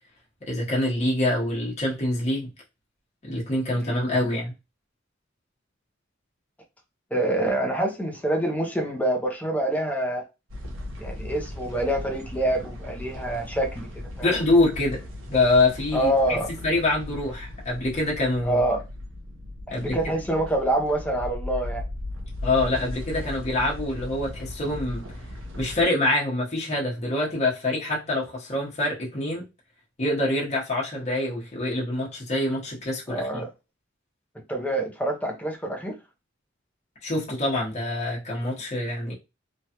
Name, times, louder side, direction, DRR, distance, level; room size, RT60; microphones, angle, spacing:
voice 1, 0.4-2.5 3.2-4.5 14.2-15.0 15.3-18.6 19.7-20.0 22.4-25.1 25.6-29.5 30.0-33.4 37.0-39.1, left 2 dB, 35° left, 1.0 m, -25 dB
voice 2, 7.1-10.2 11.0-14.3 15.9-16.5 18.5-18.8 19.7-21.8 33.1-33.5 34.5-36.0, right 1 dB, 10° left, 0.6 m, -26 dB
sound 1, 10.5-25.9, left 1 dB, 80° right, 0.9 m, -37 dB
3.1 x 2.3 x 2.8 m
head